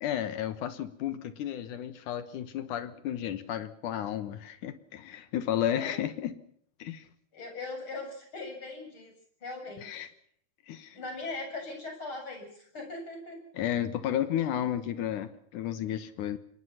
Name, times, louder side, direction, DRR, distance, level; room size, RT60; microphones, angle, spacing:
voice 1, 0.0-6.4 6.8-7.1 9.8-10.1 10.7-11.0 13.5-16.4, left 11 dB, 65° left, 11 dB, 2.0 m, -32 dB
voice 2, 5.7-6.1 7.3-9.1 9.4-10.1 10.9-13.4, left 3 dB, 25° left, 3 dB, 8.2 m, -40 dB
26.5 x 21.5 x 5.8 m, 0.65 s
omnidirectional pair, 5.0 m